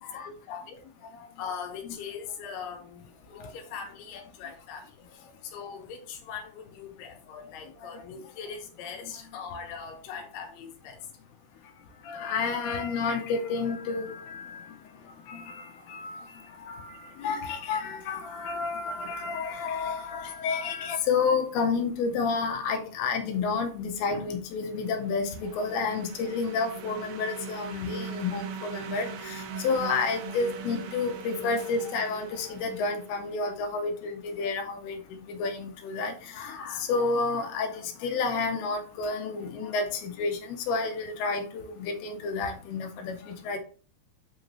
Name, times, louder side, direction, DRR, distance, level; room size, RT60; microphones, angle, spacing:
voice 1, 0.5-0.8 1.4-4.9 5.4-11.0 24.1-24.4 24.7-25.0 27.7-27.9 29.8-29.9 31.6-31.7 34.3-34.5, left 6 dB, 70° left, 2 dB, 2.8 m, -41 dB
voice 2, 12.1-14.6 15.3-15.6 15.9-16.2 16.7-35.0 35.3-43.6, left 4 dB, 90° left, 4 dB, 2.8 m, -30 dB
sound 1, 24.8-33.5, right 6 dB, 85° right, 2.8 m, -41 dB
8.2 x 4.0 x 3.0 m, 0.39 s
omnidirectional pair, 4.4 m